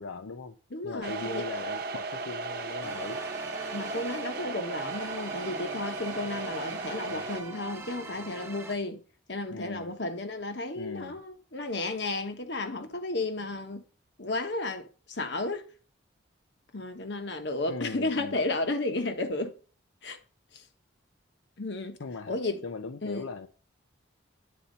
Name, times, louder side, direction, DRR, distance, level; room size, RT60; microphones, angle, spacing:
voice 1, 0.0-0.6 0.8-3.2 7.1-7.3 9.5-10.0 10.8-11.2 17.7-18.4 22.0-22.4 22.6-23.5, left 3 dB, 90° left, 0.6 m, -39 dB
voice 2, 0.7-1.4 3.7-9.0 9.3-13.8 14.2-15.6 16.7-19.5 20.0-20.2 20.5-20.6 21.6-21.9 22.3-22.6 23.0-23.3, left 2 dB, 60° left, 1.2 m, -33 dB
sound 1, 1.0-7.4, right 3 dB, 50° right, 0.9 m, -36 dB
sound 2, 2.8-8.7, right 2 dB, 15° right, 1.0 m, -43 dB
10.0 x 4.3 x 5.2 m
head